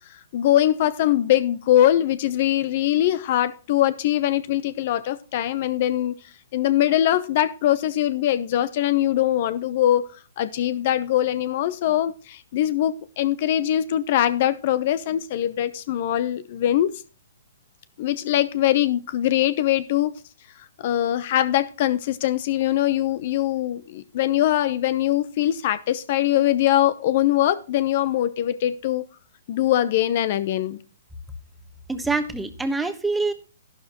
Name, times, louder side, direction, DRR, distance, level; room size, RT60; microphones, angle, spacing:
voice 1, 0.1-6.1 6.5-16.9 18.0-20.1 20.8-29.1 29.5-30.8, left 12 dB, 45° left, 0.7 m, -22 dB
voice 2, 31.9-33.3, right 3 dB, 5° right, 1.2 m, -25 dB
12.0 x 11.5 x 3.0 m
hypercardioid pair, 135°, 0 cm